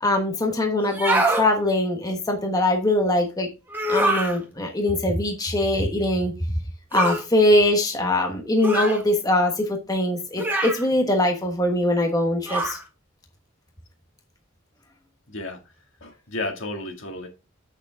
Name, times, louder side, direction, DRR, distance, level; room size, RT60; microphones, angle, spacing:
voice 1, 0.0-3.5 3.9-6.3 6.9-12.8, left 1 dB, 20° left, 1.2 m, -22 dB
sound 1, 0.8-1.5 3.7-4.4 6.9-7.2 8.6-9.0 10.4-10.8 12.5-12.8, right 1 dB, 10° right, 1.7 m, -24 dB
voice 2, 16.0-17.3, left 2 dB, 65° left, 2.1 m, -32 dB
8.2 x 6.6 x 3.5 m
head